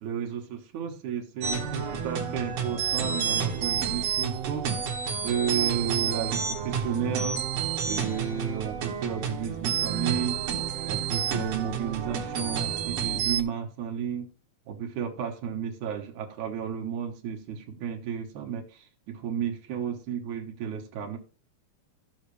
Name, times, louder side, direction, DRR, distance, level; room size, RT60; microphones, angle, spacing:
voice 1, 0.0-4.7 5.2-7.4 7.9-10.4 10.9-14.3 14.7-21.2, right 8 dB, 85° right, 1 dB, 2.8 m, -32 dB
sound 1, 1.4-13.4, right 7 dB, 65° right, 2.2 m, -29 dB
14.5 x 6.5 x 3.3 m, 0.37 s
omnidirectional pair, 3.3 m